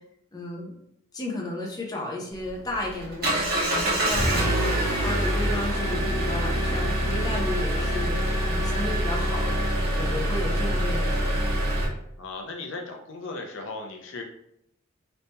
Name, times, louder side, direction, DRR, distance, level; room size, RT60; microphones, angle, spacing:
voice 1, 0.3-0.7 1.1-9.7 10.0-11.4, left 1 dB, 20° left, -2 dB, 0.7 m, -34 dB
Engine, 2.3-11.9, right 1 dB, 50° right, 1.1 m, -25 dB
voice 2, 12.2-14.2, left 3 dB, 65° left, 2 dB, 0.6 m, -36 dB
3.1 x 2.8 x 3.3 m, 0.75 s
head